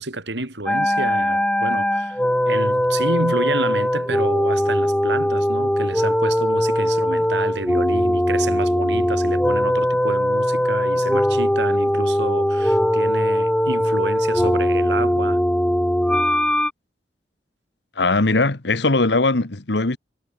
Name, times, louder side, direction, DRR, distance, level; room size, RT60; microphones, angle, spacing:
voice 1, 0.0-15.4, right 2 dB, 85° right, 3.6 m, -29 dB
sound 1, 0.7-16.7, equal, 5° left, 1.3 m, -20 dB
voice 2, 18.0-20.0, left 3 dB, 75° left, 1.5 m, -19 dB
head